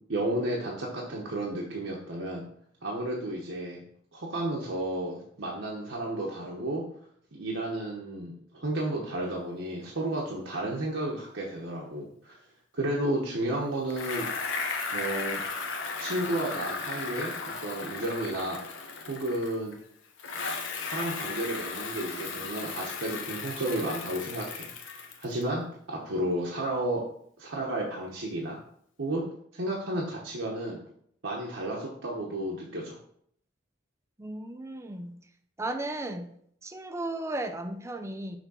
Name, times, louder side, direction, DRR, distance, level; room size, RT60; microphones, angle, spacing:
voice 1, 0.1-2.4 2.8-3.8 4.1-6.8 7.3-12.4 12.7-14.3 14.9-15.4 16.0-18.6 19.1-19.8 20.8-27.0 27.4-28.6 29.0-29.2 29.5-30.8 31.2-33.0, right 1 dB, 75° right, 1.0 m, -32 dB
Bicycle, 13.9-19.8 20.2-25.4, left 4 dB, 85° left, 0.9 m, -35 dB
voice 2, 34.2-35.2 35.6-36.3 36.6-38.4, right 2 dB, 15° right, 0.5 m, -35 dB
6.1 x 3.4 x 5.5 m
head